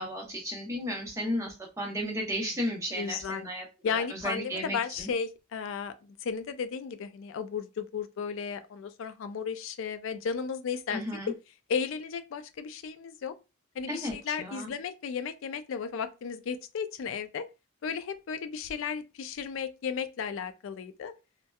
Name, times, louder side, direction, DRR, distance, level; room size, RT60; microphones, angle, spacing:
voice 1, 0.0-5.1 10.9-11.3 13.9-14.7, equal, 15° right, 0.7 m, -34 dB
voice 2, 3.0-3.4 3.8-11.0 11.3-11.4 11.7-13.3 13.8-17.5 17.8-21.1, left 6 dB, 65° left, 0.3 m, -34 dB
2.8 x 2.1 x 2.2 m
head